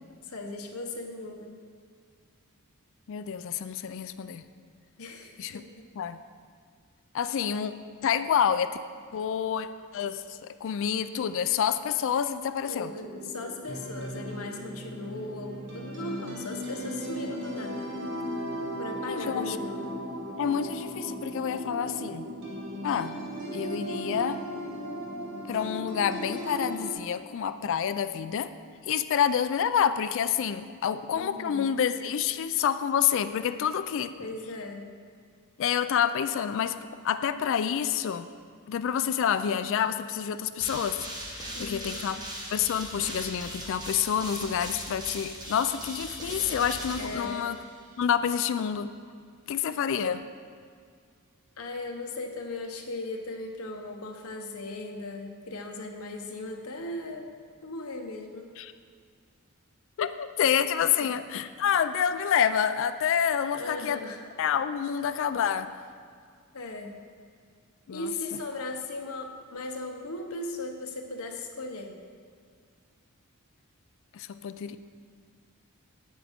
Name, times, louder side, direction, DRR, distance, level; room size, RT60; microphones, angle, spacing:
voice 1, 0.2-1.6 5.0-5.6 12.7-17.9 18.8-20.0 31.2-31.7 34.2-34.9 41.5-42.1 47.0-47.5 51.6-57.3 57.6-58.5 63.5-64.2 66.5-66.9 67.9-71.9, left 2 dB, 75° left, 3 dB, 0.9 m, -38 dB
voice 2, 3.1-4.4 5.4-5.6 6.0-6.2 7.1-7.7 8.0-8.8 9.1-12.9 19.1-19.6 20.4-22.3 22.8-23.2 23.5-24.4 25.5-28.5 28.9-34.1 35.6-36.8 37.0-38.3 38.7-41.1 41.3-42.2 42.5-47.6 48.0-48.9 49.5-50.2 58.6-58.7 60.0-64.0 64.4-65.7 67.9-68.4 74.1-74.8, left 8 dB, 60° left, 12 dB, 0.3 m, -28 dB
sound 1, 13.0-26.9, equal, 60° right, 1.5 m, -36 dB
sound 2, 40.6-47.9, right 1 dB, 20° right, 1.2 m, -39 dB
8.7 x 8.4 x 3.6 m, 2.1 s
head